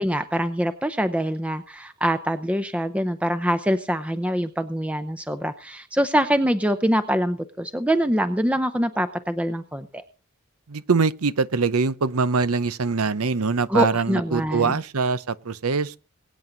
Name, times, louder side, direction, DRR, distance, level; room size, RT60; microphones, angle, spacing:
voice 1, 0.0-10.0 13.7-14.8, equal, 5° right, 0.7 m, -24 dB
voice 2, 10.7-16.0, right 4 dB, 80° right, 0.8 m, -23 dB
23.0 x 9.3 x 3.9 m
head